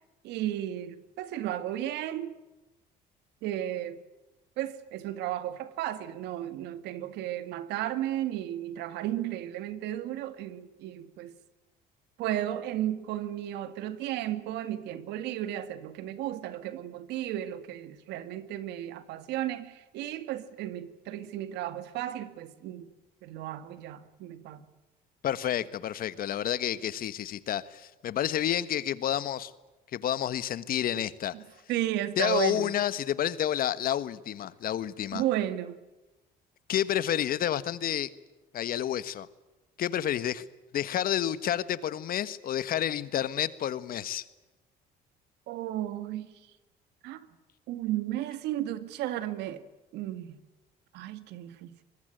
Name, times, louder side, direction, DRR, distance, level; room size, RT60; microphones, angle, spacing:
voice 1, 0.2-2.4 3.4-4.0 4.6-11.3 12.2-22.9 23.2-24.6 31.3-31.4 31.7-32.7 35.1-35.8 45.5-46.3 47.0-47.2 47.7-49.6 49.9-50.4 50.9-51.7, right 12 dB, 85° right, 2.2 m, -34 dB
voice 2, 25.2-29.5 29.9-31.3 32.2-35.2 36.7-38.1 38.5-39.3 39.8-40.4 40.7-44.2, left 11 dB, 60° left, 1.4 m, -29 dB
24.5 x 21.5 x 9.2 m
cardioid pair, 110°, 17 cm